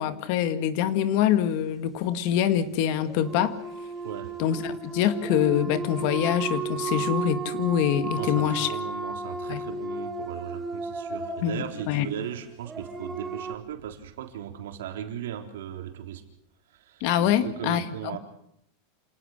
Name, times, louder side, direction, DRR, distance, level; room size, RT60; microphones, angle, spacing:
voice 1, 0.0-3.6 4.4-8.7 9.5-9.6 11.4-12.1 17.0-18.2, left 10 dB, 45° left, 12 dB, 1.8 m, -25 dB
sound 1, 3.0-13.5, right 3 dB, 10° right, 1.6 m, -34 dB
voice 2, 4.0-4.3 8.1-16.2 16.7-18.2, right 10 dB, 85° right, 6 dB, 3.8 m, -37 dB
28.0 x 18.5 x 6.6 m, 0.70 s
supercardioid pair, 170°, 0 cm